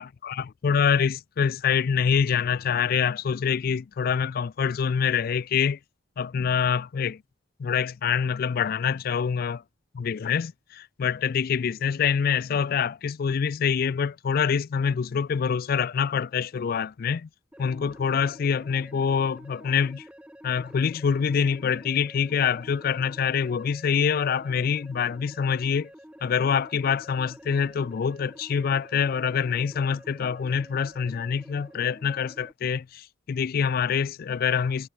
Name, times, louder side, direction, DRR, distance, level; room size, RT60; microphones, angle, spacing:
voice 1, 0.0-5.8 6.2-7.2 7.6-9.6 9.9-17.3 17.6-20.0 20.4-25.9 26.2-34.9, left 7 dB, 45° left, 0.3 m, -25 dB
sound 1, 17.5-32.5, equal, 5° right, 4.9 m, -49 dB
head